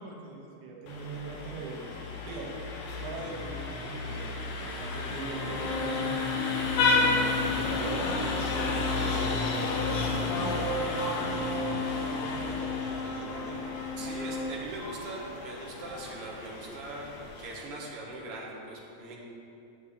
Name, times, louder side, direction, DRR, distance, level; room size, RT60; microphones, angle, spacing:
voice 1, 0.0-2.0 2.2-2.5 3.0-6.6 6.9-11.5 12.0-13.7, right 3 dB, 85° right, -1 dB, 2.6 m, -41 dB
Vehicle horn car horn honking, 0.9-17.7, left 3 dB, 75° left, 2.2 m, -32 dB
sound 1, 5.3-14.4, left 5 dB, 35° right, 1.5 m, -35 dB
sound 2, 6.6-14.7, right 1 dB, 25° left, 2.2 m, -47 dB
voice 2, 14.0-19.2, right 2 dB, 55° right, -3 dB, 2.0 m, -41 dB
11.5 x 8.3 x 3.6 m, 2.7 s
omnidirectional pair, 3.4 m